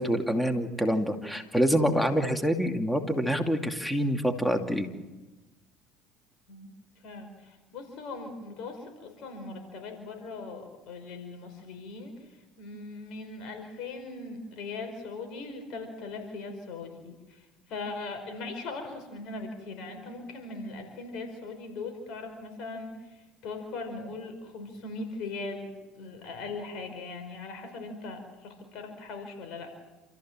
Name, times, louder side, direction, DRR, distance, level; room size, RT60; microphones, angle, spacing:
voice 1, 0.0-4.9, equal, 5° left, 5 dB, 2.5 m, -26 dB
voice 2, 7.0-25.7 26.0-29.8, left 3 dB, 65° left, 5 dB, 5.2 m, -40 dB
28.5 x 14.5 x 7.5 m, 1.1 s
supercardioid pair, 85°, 0 cm